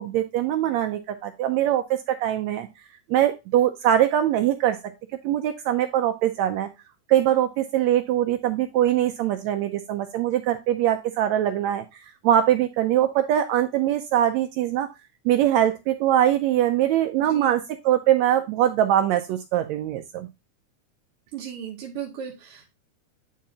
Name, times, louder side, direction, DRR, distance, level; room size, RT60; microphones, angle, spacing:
voice 1, 0.0-2.7 3.1-4.9 5.2-6.7 7.1-11.8 12.2-14.9 15.2-20.3, right 11 dB, 80° right, 8 dB, 1.6 m, -22 dB
voice 2, 17.1-17.5 21.3-22.7, right 9 dB, 65° right, 0 dB, 1.5 m, -36 dB
9.2 x 4.5 x 2.8 m, 0.25 s
omnidirectional pair, 3.6 m